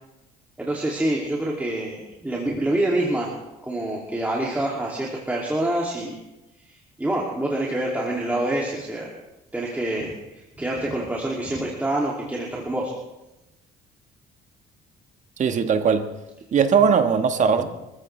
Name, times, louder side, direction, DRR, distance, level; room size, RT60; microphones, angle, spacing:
voice 1, 0.6-3.3 3.6-6.2 6.7-9.1 9.5-12.9, right 1 dB, 10° right, -4 dB, 2.7 m, -26 dB
voice 2, 15.4-16.1 16.5-17.6, right 6 dB, 45° right, 7 dB, 1.5 m, -19 dB
25.5 x 14.5 x 3.4 m, 0.97 s
cardioid pair, 110°, 17 cm